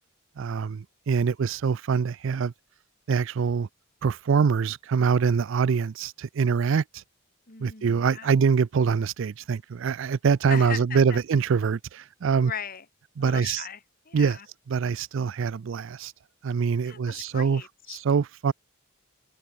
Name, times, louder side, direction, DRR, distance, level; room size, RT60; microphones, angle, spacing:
voice 1, 0.4-2.5 3.1-3.7 4.0-7.0 7.6-12.5 13.2-13.6 14.1-14.4 14.7-16.1 16.4-17.6 18.0-18.5, right 6 dB, 65° right, 0.4 m, -24 dB
voice 2, 7.5-8.3 10.5-11.2 12.3-12.9 13.2-14.5 16.8-18.0, left 7 dB, 45° left, 2.1 m, -38 dB
head